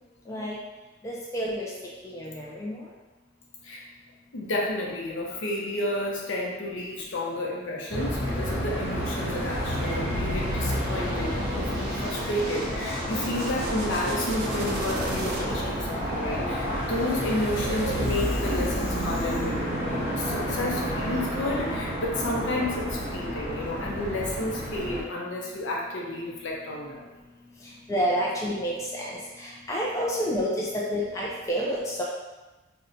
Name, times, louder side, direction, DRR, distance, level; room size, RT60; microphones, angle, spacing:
voice 1, 0.3-0.6 1.0-1.7 2.0-2.9 27.6-32.0, equal, 15° left, -4 dB, 0.3 m, -29 dB
voice 2, 4.3-27.1, left 1 dB, 65° left, -2 dB, 0.6 m, -31 dB
sound 1, 7.9-25.0, equal, 10° right, 0.7 m, -30 dB
sound 2, 9.0-15.8, right 1 dB, 50° right, 0.4 m, -39 dB
2.7 x 2.2 x 3.8 m, 1.1 s
head